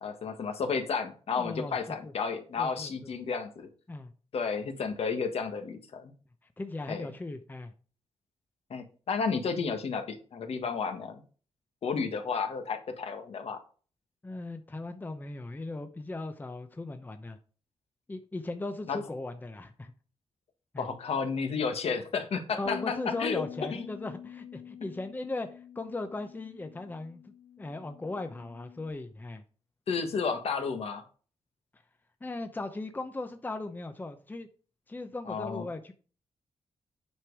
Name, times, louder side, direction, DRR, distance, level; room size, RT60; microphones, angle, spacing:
voice 1, 0.0-3.7 4.3-6.1 6.9-7.1 8.7-11.2 11.8-13.6 18.9-19.0 20.8-23.4 23.7-23.8 29.9-31.0 35.3-35.6, left 5 dB, 65° left, 6 dB, 1.7 m, -32 dB
voice 2, 1.4-2.1 2.6-3.1 3.9-4.1 6.6-7.7 14.2-17.4 18.1-19.9 20.7-20.9 22.5-29.4 32.2-34.5 34.9-35.9, left 2 dB, 15° left, 7 dB, 0.8 m, -38 dB
Bass guitar, 22.7-28.9, left 9 dB, 85° left, 0.7 m, -46 dB
9.0 x 5.2 x 4.8 m, 0.39 s
cardioid pair, 105°, 11 cm